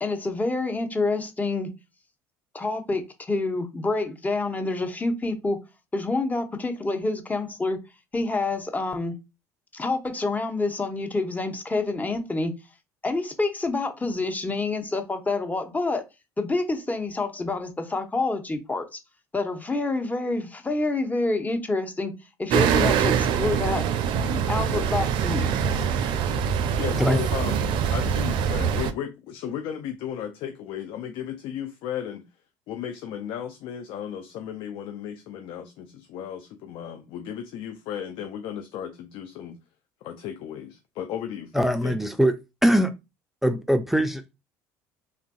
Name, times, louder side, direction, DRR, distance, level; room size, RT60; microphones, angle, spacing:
voice 1, 0.0-1.7 2.5-5.6 5.9-7.8 8.1-9.1 9.7-12.5 13.0-16.0 16.4-19.0 19.3-22.1 22.4-23.8 24.5-25.5, left 3 dB, 15° left, 0.8 m, -27 dB
sound 1, 22.5-28.9, right 7 dB, 60° right, 0.4 m, -24 dB
voice 2, 26.8-27.6 27.9-32.2 32.7-39.6 40.0-42.0, left 9 dB, 65° left, 0.4 m, -35 dB
voice 3, 41.5-42.4 42.6-42.9 43.4-44.2, equal, 5° right, 0.4 m, -21 dB
3.4 x 2.4 x 2.3 m
hypercardioid pair, 65°, 9 cm